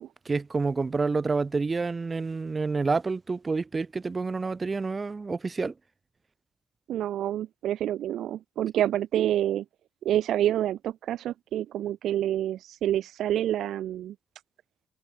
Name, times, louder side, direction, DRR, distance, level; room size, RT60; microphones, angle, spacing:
voice 1, 0.3-5.7, right 4 dB, 30° right, 3.5 m, -28 dB
voice 2, 6.9-9.6 10.0-14.1, right 12 dB, 75° right, 0.8 m, -28 dB
cardioid pair, 90°, 0 cm